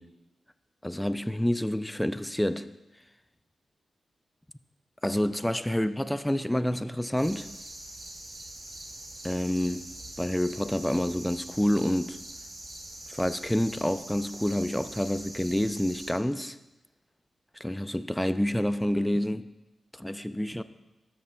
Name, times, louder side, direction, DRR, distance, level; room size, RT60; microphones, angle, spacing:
voice 1, 0.8-2.7 5.0-7.5 9.2-9.8 10.2-12.2 13.1-16.6 17.6-19.5 19.9-20.6, left 1 dB, 5° left, 0.3 m, -28 dB
sound 1, 7.2-16.1, right 1 dB, 25° right, 2.0 m, -43 dB
12.5 x 7.0 x 2.2 m
cardioid pair, 55°, 0 cm